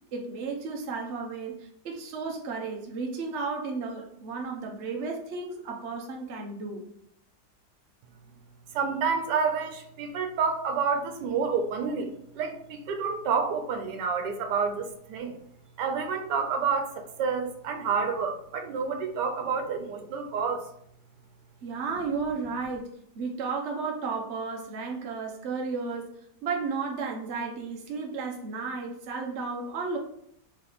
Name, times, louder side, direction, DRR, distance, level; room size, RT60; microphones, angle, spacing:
voice 1, 0.1-6.8 21.6-30.0, right 4 dB, 55° right, 1 dB, 0.9 m, -33 dB
voice 2, 8.7-15.4 15.8-20.7, right 5 dB, 90° right, 5 dB, 1.3 m, -29 dB
3.5 x 3.2 x 3.9 m, 0.70 s
omnidirectional pair, 1.8 m